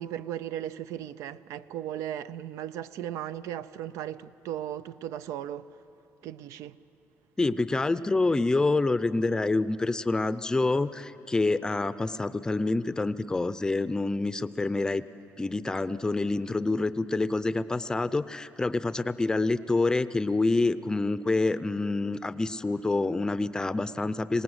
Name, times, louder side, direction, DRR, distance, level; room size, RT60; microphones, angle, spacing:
voice 1, 0.0-5.7 6.2-6.8, right 11 dB, 90° right, 0.5 m, -36 dB
voice 2, 7.4-15.0 15.4-24.4, left 3 dB, 15° left, 0.5 m, -27 dB
26.0 x 19.0 x 8.0 m
cardioid pair, 145°, 5 cm